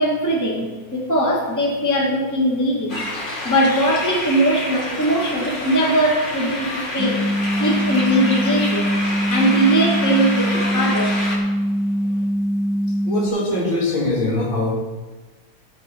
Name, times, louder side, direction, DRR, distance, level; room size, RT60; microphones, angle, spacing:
voice 1, 0.0-3.0 3.4-7.2 7.6-8.9 9.3-11.1, right 1 dB, 10° left, -1 dB, 1.4 m, -20 dB
sound 1, 2.9-11.4, left 1 dB, 25° left, 1.6 m, -28 dB
sound 2, 7.0-13.3, equal, 60° right, 1.0 m, -22 dB
voice 2, 13.0-14.7, left 2 dB, 80° left, -2 dB, 2.9 m, -22 dB
14.0 x 6.4 x 4.3 m, 1.3 s
omnidirectional pair, 2.2 m